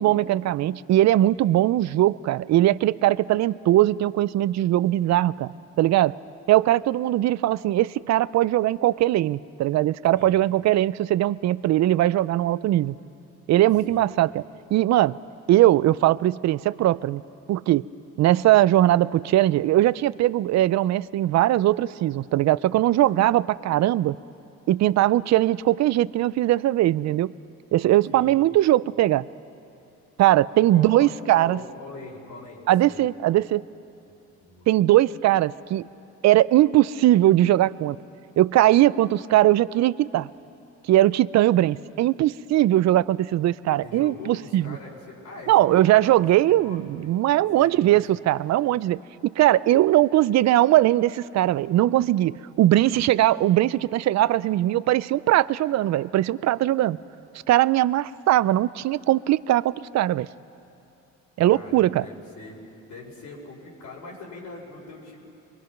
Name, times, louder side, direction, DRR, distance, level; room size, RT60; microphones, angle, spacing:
voice 1, 0.0-6.1 6.5-13.0 13.5-14.4 14.7-15.2 15.5-17.2 17.5-17.9 18.2-24.2 24.7-27.3 27.7-29.3 30.2-31.6 32.7-33.6 34.7-35.9 36.2-38.0 38.4-40.3 40.9-44.8 45.5-57.0 57.5-60.3 61.4-62.0, right 14 dB, 65° right, 19 dB, 0.5 m, -20 dB
voice 2, 13.9-14.2 23.0-23.6 28.1-28.4 30.7-33.1 34.5-34.7 43.8-46.1 46.5-47.1 47.5-48.0 61.4-65.2, left 3 dB, 75° left, -2 dB, 5.0 m, -42 dB
23.0 x 23.0 x 5.9 m, 2.7 s
cardioid pair, 90°, 30 cm